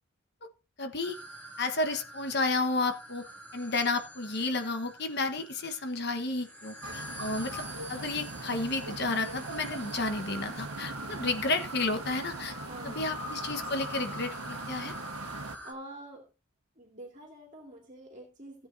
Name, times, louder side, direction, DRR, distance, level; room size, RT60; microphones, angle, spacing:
voice 1, 0.8-1.1 1.6-7.6 7.9-12.5 12.8-14.9, left 3 dB, 50° left, 7 dB, 1.2 m, -32 dB
sound 1, 1.0-15.7, equal, 10° left, 2.4 m, -45 dB
sound 2, 6.8-15.6, right 3 dB, 90° right, 1.4 m, -41 dB
voice 2, 12.7-13.3 15.6-16.3 16.8-18.7, right 1 dB, 35° right, 0 dB, 2.4 m, -47 dB
16.5 x 8.4 x 2.7 m, 0.31 s
head